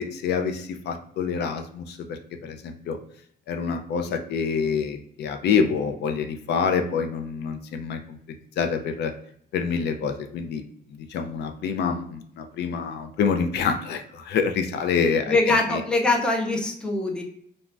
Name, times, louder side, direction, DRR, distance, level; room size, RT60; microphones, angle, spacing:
voice 1, 0.0-3.0 3.5-8.2 8.6-9.1 9.5-10.6 11.0-15.8, left 6 dB, 75° left, 5 dB, 0.4 m, -27 dB
voice 2, 15.3-17.2, left 2 dB, 5° left, 1 dB, 0.3 m, -23 dB
3.3 x 2.1 x 2.4 m, 0.67 s
cardioid pair, 175°, 18 cm